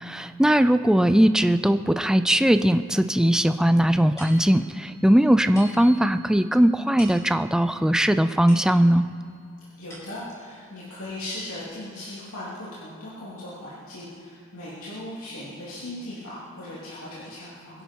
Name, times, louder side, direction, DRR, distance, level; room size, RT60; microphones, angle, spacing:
voice 1, 0.0-9.1, equal, 5° right, 10 dB, 0.4 m, -20 dB
sound 1, 4.2-9.2 9.6-10.5, left 1 dB, 15° left, 4.5 m, -46 dB
voice 2, 9.8-17.8, left 1 dB, 75° left, -8 dB, 3.0 m, -38 dB
23.0 x 11.0 x 4.6 m, 2.3 s
head